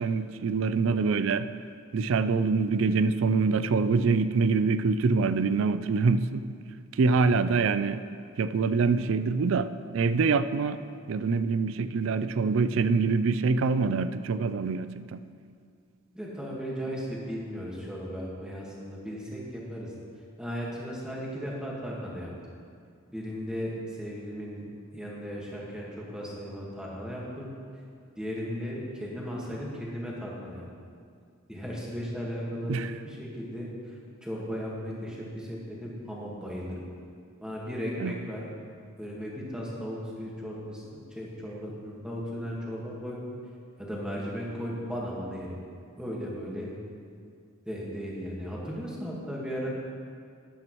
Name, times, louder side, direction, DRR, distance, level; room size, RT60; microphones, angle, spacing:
voice 1, 0.0-1.5 1.9-6.4 6.9-8.0 8.4-10.8 11.1-15.2 32.7-32.9 38.0-38.1, right 4 dB, 60° right, 12 dB, 0.4 m, -25 dB
voice 2, 7.0-7.4 16.1-19.9 20.4-22.3 23.1-24.6 24.9-27.5 28.2-30.6 31.5-36.8 37.4-38.5 39.0-43.2 43.8-45.6 46.0-46.7 47.6-49.7, equal, 5° right, -5 dB, 1.6 m, -36 dB
12.0 x 10.5 x 3.1 m, 2.3 s
head